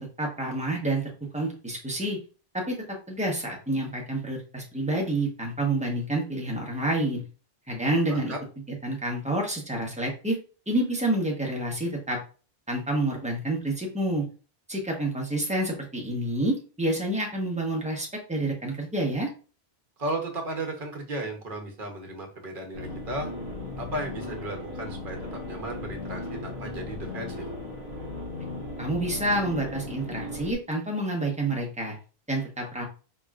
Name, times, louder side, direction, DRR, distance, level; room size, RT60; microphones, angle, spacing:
voice 1, 0.0-2.2 2.5-2.8 3.1-7.2 7.7-8.3 8.8-10.4 10.7-12.2 12.7-14.2 14.7-19.3 28.8-31.9 32.3-32.8, right 1 dB, 5° right, -1 dB, 1.0 m, -28 dB
voice 2, 20.0-23.3 23.8-27.5, right 1 dB, 55° right, 3 dB, 1.1 m, -35 dB
sound 1, 22.7-30.5, left 2 dB, 85° left, 1.5 m, -37 dB
4.4 x 3.0 x 2.4 m, 0.36 s
omnidirectional pair, 1.0 m